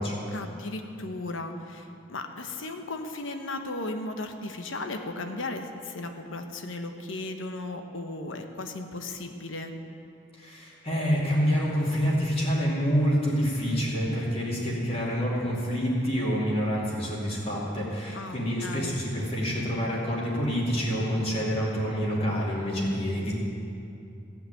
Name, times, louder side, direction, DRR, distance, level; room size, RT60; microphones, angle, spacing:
voice 1, 0.3-9.7 18.1-19.0, left 2 dB, 85° left, 6 dB, 1.1 m, -36 dB
voice 2, 10.3-23.3, equal, 30° left, -4 dB, 2.5 m, -27 dB
15.5 x 5.9 x 9.1 m, 2.7 s
head